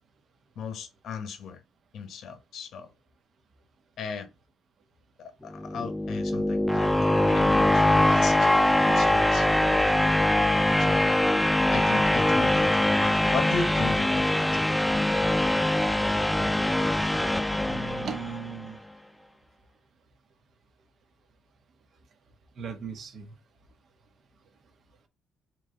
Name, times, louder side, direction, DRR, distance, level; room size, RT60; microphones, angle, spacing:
voice 1, 0.6-1.6 1.9-2.9 4.0-4.3 5.2-8.5 8.8-9.5 9.7-9.9 10.8-11.2 11.7-12.7 13.0-14.4, left 6 dB, 70° left, 0.9 m, -36 dB
sound 1, 5.5-18.5, left 1 dB, 5° left, 0.4 m, -23 dB
voice 2, 17.6-18.8 22.6-23.3, right 5 dB, 60° right, 1.0 m, -37 dB
3.9 x 3.1 x 3.7 m
cardioid pair, 90°, 0 cm